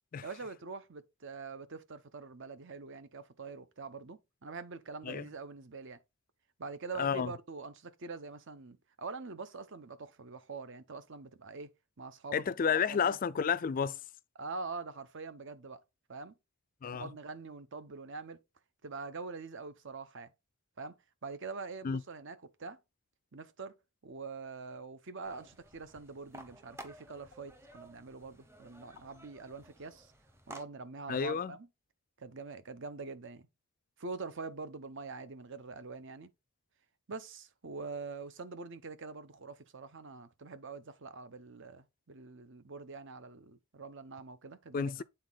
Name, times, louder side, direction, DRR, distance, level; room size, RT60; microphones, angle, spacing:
voice 1, 0.2-6.0 6.6-13.2 14.3-15.8 16.1-16.3 16.9-18.4 18.8-20.3 20.8-21.0 21.2-22.8 23.3-23.7 24.0-30.1 30.5-31.7 32.2-33.5 34.0-36.3 37.1-45.0, right 4 dB, 55° right, 0.8 m, -44 dB
voice 2, 7.0-7.3 12.3-14.0 16.8-17.1 21.8-22.0 31.1-31.5 44.7-45.0, left 6 dB, 40° left, 0.3 m, -31 dB
sound 1, 25.2-30.6, right 1 dB, 10° right, 0.8 m, -53 dB
8.0 x 4.1 x 3.9 m
head